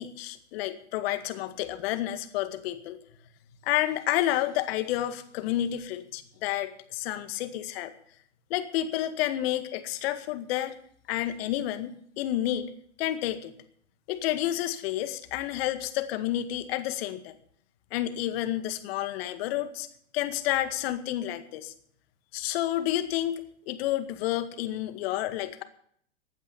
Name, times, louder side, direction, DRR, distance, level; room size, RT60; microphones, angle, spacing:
voice 1, 0.0-3.0 3.6-7.9 8.5-10.8 11.1-12.7 13.0-13.5 14.1-17.4 17.9-19.9 20.1-21.7 22.3-23.4 23.7-25.6, left 13 dB, 55° left, 11 dB, 2.0 m, -30 dB
15.5 x 9.3 x 7.0 m, 0.62 s
hypercardioid pair, 105°, 36 cm